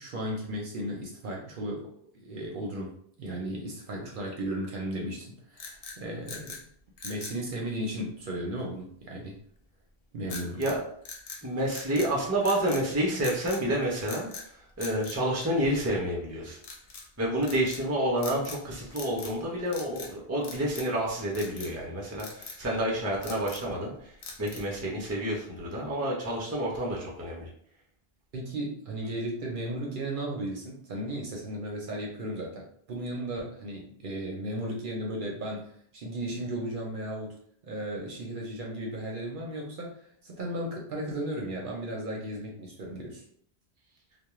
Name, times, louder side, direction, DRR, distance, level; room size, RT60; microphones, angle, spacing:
voice 1, 0.0-6.6 7.0-9.4 10.1-10.6 28.3-37.3 37.6-40.0 40.2-43.2, right 1 dB, 60° right, -1 dB, 0.7 m, -35 dB
sound 1, 5.5-6.6 7.0-7.4 10.3-10.8 11.0-12.1 12.4-12.9 13.2-13.6 14.0-14.5 14.8-16.0 16.6-17.1 17.4-17.8 18.2-18.6 18.9-19.4 19.7-20.1 20.4-21.0 21.3-21.7 22.2-22.6 23.0-23.7 24.2-24.8, left 4 dB, 55° left, 0.4 m, -42 dB
voice 2, 11.4-14.3 14.8-16.6 17.2-23.9 24.4-27.5, right 1 dB, 20° right, -3 dB, 0.5 m, -29 dB
2.3 x 2.2 x 2.9 m, 0.63 s
omnidirectional pair, 1.1 m